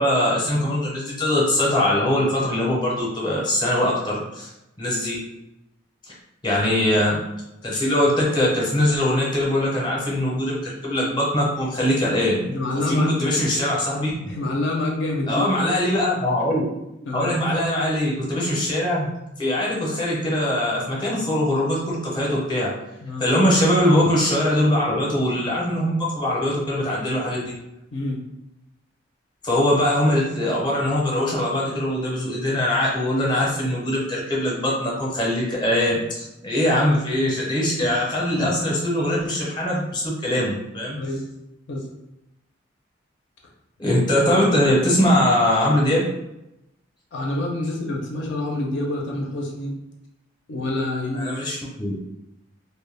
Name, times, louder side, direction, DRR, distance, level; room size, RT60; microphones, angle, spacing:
voice 1, 0.0-4.5 4.8-5.2 6.4-7.2 7.6-12.5 12.9-14.1 15.3-16.7 17.1-19.1 19.4-22.7 23.2-27.5 29.4-41.0 43.8-46.1 51.1-51.9, left 1 dB, 20° left, -4 dB, 0.6 m, -22 dB
voice 2, 12.4-13.4 14.2-15.5 17.0-17.3 23.0-23.3 27.9-28.2 37.8-37.9 38.4-38.5 40.9-41.2 41.7-41.9 47.1-49.7 50.5-51.3, left 2 dB, 65° left, 0 dB, 0.4 m, -27 dB
2.2 x 2.1 x 3.2 m, 0.91 s
head